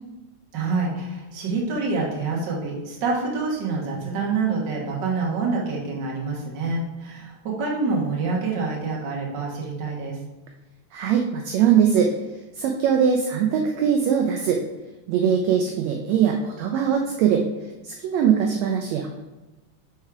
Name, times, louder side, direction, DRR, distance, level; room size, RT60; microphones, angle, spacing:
voice 1, 0.5-10.2, right 4 dB, 50° right, -3 dB, 1.4 m, -26 dB
voice 2, 10.9-12.1 12.5-14.6 15.1-17.4 17.8-19.2, right 8 dB, 80° right, 3 dB, 1.6 m, -21 dB
4.8 x 4.3 x 4.7 m, 1.1 s
omnidirectional pair, 3.5 m